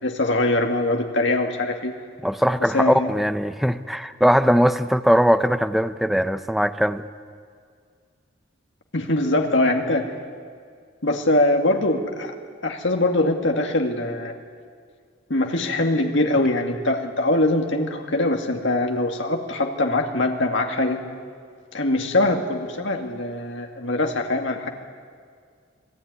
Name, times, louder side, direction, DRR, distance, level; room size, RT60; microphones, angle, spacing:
voice 1, 0.0-1.9 2.7-3.1 8.9-10.1 11.0-12.3 12.6-14.3 15.3-21.0 21.7-24.7, left 2 dB, 60° left, 3 dB, 2.2 m, -22 dB
voice 2, 2.2-7.0, equal, ahead, 10 dB, 0.6 m, -20 dB
26.0 x 17.5 x 9.6 m, 2.1 s
head